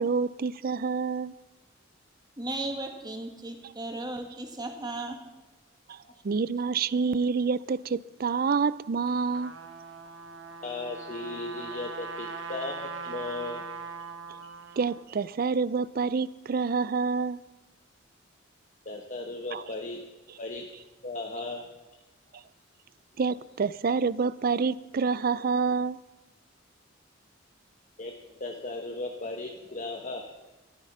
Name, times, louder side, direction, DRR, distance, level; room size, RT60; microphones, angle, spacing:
voice 1, 0.0-1.4 5.9-6.0 6.2-9.5 14.8-17.4 19.5-19.6 23.2-26.0, right 5 dB, 50° right, 0.4 m, -27 dB
voice 2, 2.4-5.2, right 2 dB, 20° right, 1.9 m, -35 dB
Trumpet, 9.1-15.0, right 4 dB, 70° right, 1.2 m, -40 dB
voice 3, 10.6-13.6 18.8-20.0 20.4-20.7 21.0-21.6 28.0-30.2, left 2 dB, 40° left, 1.1 m, -36 dB
13.5 x 13.5 x 5.7 m
head